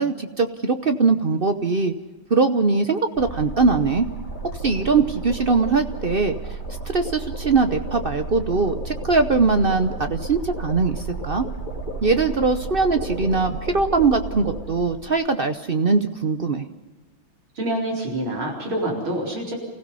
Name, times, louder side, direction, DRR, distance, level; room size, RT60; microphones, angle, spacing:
voice 1, 0.0-1.9 2.3-4.1 4.6-6.6 6.9-11.4 12.0-16.7, right 4 dB, 55° right, 8 dB, 0.6 m, -21 dB
sound 1, 3.2-15.1, right 2 dB, 20° left, 3.3 m, -33 dB
voice 2, 17.6-19.5, right 1 dB, 80° right, -1 dB, 5.1 m, -26 dB
29.5 x 16.0 x 5.6 m, 1.2 s
omnidirectional pair, 2.2 m